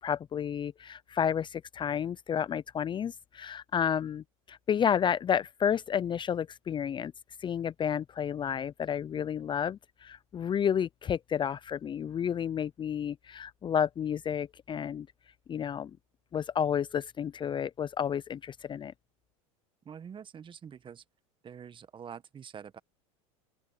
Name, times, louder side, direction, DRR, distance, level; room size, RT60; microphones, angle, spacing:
voice 1, 0.0-7.1 7.4-15.1 15.5-15.9 16.3-18.9, left 8 dB, 25° left, 0.7 m, -31 dB
voice 2, 19.8-21.0 21.4-22.8, right 7 dB, 30° right, 1.7 m, -46 dB
open air
hypercardioid pair, 90°, 17 cm